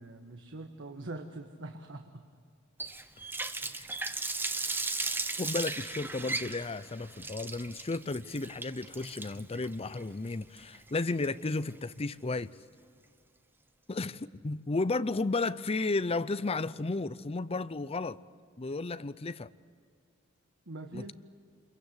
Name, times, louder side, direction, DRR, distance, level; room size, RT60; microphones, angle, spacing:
voice 1, 0.0-2.2 20.7-21.1, right 2 dB, 65° right, 1.4 m, -43 dB
Water tap faucet, 2.8-11.7, right 3 dB, 10° right, 0.8 m, -36 dB
voice 2, 5.4-12.5 13.9-18.2 18.6-19.5 20.9-21.1, left 3 dB, 30° left, 0.6 m, -33 dB
27.5 x 22.5 x 8.1 m
head